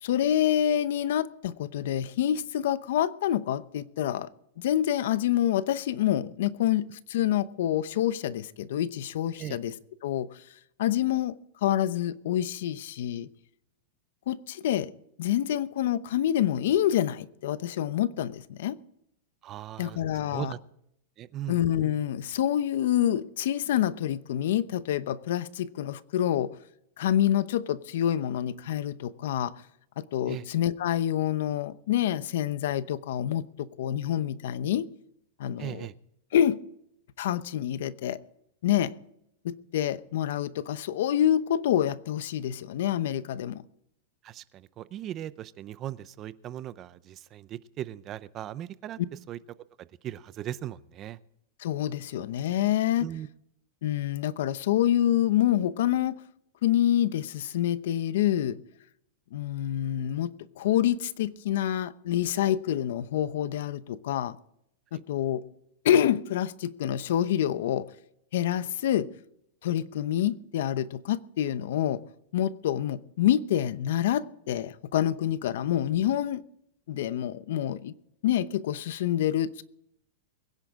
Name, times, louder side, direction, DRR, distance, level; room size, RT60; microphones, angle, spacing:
voice 1, 0.0-4.3 4.6-9.7 10.0-10.3 10.8-11.4 11.6-13.3 14.3-14.9 15.2-18.8 19.8-20.5 21.5-26.5 27.0-29.5 30.0-34.9 35.4-35.9 36.3-36.6 37.2-38.2 38.6-38.9 39.4-43.6 51.6-53.0 53.8-56.2 56.6-58.6 59.3-64.4 64.9-65.4 65.8-67.9 68.3-69.1 69.6-72.0 72.3-76.4 76.9-77.9 78.2-79.6, left 11 dB, 65° left, 0.8 m, -27 dB
voice 2, 19.4-20.6 21.2-21.6 30.3-30.5 35.6-35.9 44.2-49.0 49.3-49.4 49.8-51.2 53.0-53.3 64.9-65.0, right 12 dB, 25° right, 0.6 m, -38 dB
22.5 x 10.5 x 3.7 m
supercardioid pair, 165°, 0 cm